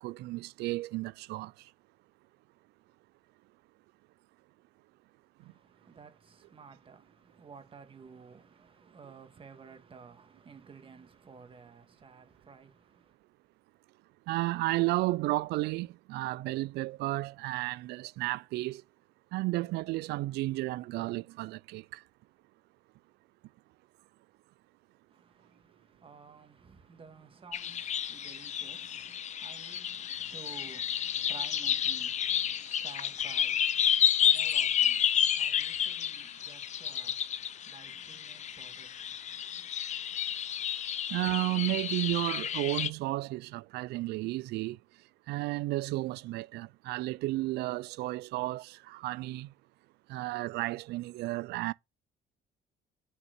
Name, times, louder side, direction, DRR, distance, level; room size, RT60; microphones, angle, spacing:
voice 1, 0.0-1.7 5.4-5.5 14.3-18.8 19.3-22.0 41.1-49.5 50.1-51.7, right 19 dB, 80° right, 0.4 m, -33 dB
voice 2, 5.4-13.2 25.1-41.0, right 5 dB, 30° right, 1.8 m, -54 dB
sound 1, 27.5-42.9, left 9 dB, 45° left, 0.6 m, -31 dB
6.5 x 6.0 x 6.1 m
cardioid pair, 110°, 17 cm